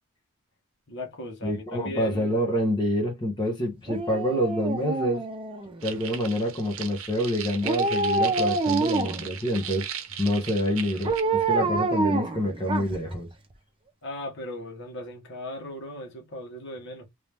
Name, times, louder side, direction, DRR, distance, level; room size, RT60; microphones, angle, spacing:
voice 1, 0.9-2.3 11.6-11.8 14.0-17.1, left 1 dB, 60° left, 1.5 m, -38 dB
voice 2, 1.4-5.2 5.8-9.9 10.2-13.3, equal, 25° left, 1.0 m, -27 dB
Dog, 3.9-5.9 7.6-9.3 11.0-13.2 13.5-13.6, right 3 dB, 25° right, 0.7 m, -27 dB
sound 1, 5.8-11.2, right 9 dB, 75° right, 0.7 m, -38 dB
3.0 x 2.8 x 3.4 m
head